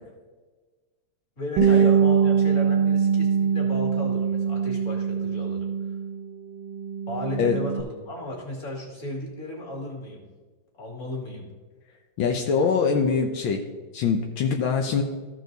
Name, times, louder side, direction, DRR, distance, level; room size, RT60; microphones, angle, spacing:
voice 1, 1.4-5.7 7.1-10.2 10.7-11.5 13.0-13.1, left 1 dB, 40° left, -1 dB, 2.5 m, -34 dB
Bass guitar, 1.6-6.3 6.6-7.8, right 7 dB, 75° right, 1.3 m, -23 dB
voice 2, 12.2-13.6 13.9-15.0, left 6 dB, 80° left, 3 dB, 1.5 m, -23 dB
14.0 x 4.7 x 3.9 m, 1.3 s
omnidirectional pair, 2.1 m